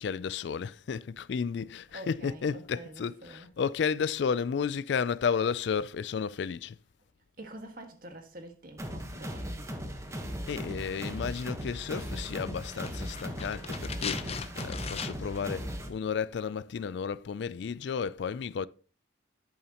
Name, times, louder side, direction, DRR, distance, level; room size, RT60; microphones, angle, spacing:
voice 1, 0.0-6.8 10.5-18.7, left 6 dB, 60° left, 0.3 m, -32 dB
voice 2, 1.9-3.5 7.4-9.7, right 1 dB, 45° right, 1.7 m, -47 dB
sound 1, 8.8-15.9, equal, 15° right, 1.2 m, -38 dB
sound 2, 12.6-15.4 15.7-15.8, left 6 dB, 30° left, 0.7 m, -38 dB
11.0 x 8.7 x 2.9 m
head